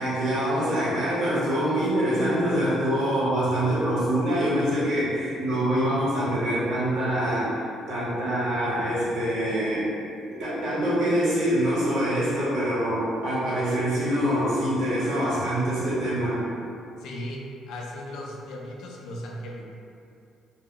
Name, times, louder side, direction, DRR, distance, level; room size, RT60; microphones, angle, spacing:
voice 1, 0.0-7.5 7.9-9.9 10.4-16.4, equal, 60° right, -9 dB, 1.0 m, -25 dB
voice 2, 17.0-17.4 17.7-19.7, left 1 dB, 70° left, -2 dB, 0.4 m, -37 dB
2.1 x 2.0 x 3.6 m, 2.6 s
cardioid pair, 165°, 0 cm